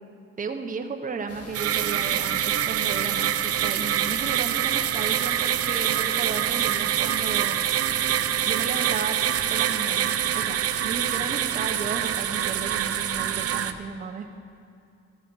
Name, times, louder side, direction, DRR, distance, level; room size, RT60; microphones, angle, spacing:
voice 1, 0.4-7.6 8.4-9.2 9.5-14.3, right 4 dB, 25° right, 5 dB, 0.8 m, -34 dB
sound 1, 1.3-13.7, left 1 dB, 55° left, 1.5 m, -43 dB
sound 2, 1.5-13.7, right 11 dB, 50° right, 0.4 m, -25 dB
13.5 x 5.7 x 5.6 m, 2.5 s
cardioid pair, 90°, 30 cm